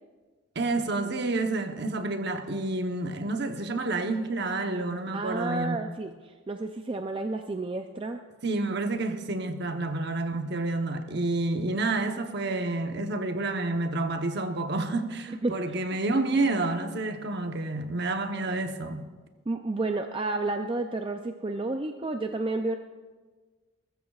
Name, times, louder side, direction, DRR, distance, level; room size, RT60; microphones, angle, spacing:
voice 1, 0.5-5.8 8.4-19.1, right 2 dB, 50° right, 0.9 m, -29 dB
voice 2, 5.1-8.2 15.3-15.8 19.5-22.8, right 2 dB, 25° right, 0.4 m, -31 dB
21.0 x 13.5 x 2.4 m
head